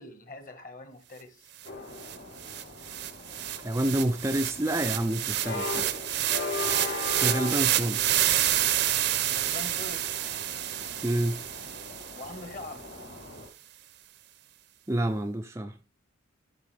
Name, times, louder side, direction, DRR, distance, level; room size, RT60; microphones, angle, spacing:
voice 1, 0.0-1.5 9.3-10.2 12.2-12.8, left 2 dB, 40° left, 1.4 m, -43 dB
sound 1, 1.6-13.5, left 3 dB, 60° left, 3.6 m, -39 dB
sound 2, 1.6-1.7 2.0-12.3, right 12 dB, 55° right, 0.6 m, -29 dB
voice 2, 3.6-5.9 7.2-8.2 11.0-11.4 14.9-15.8, right 1 dB, 15° right, 0.4 m, -28 dB
12.0 x 6.2 x 3.3 m
head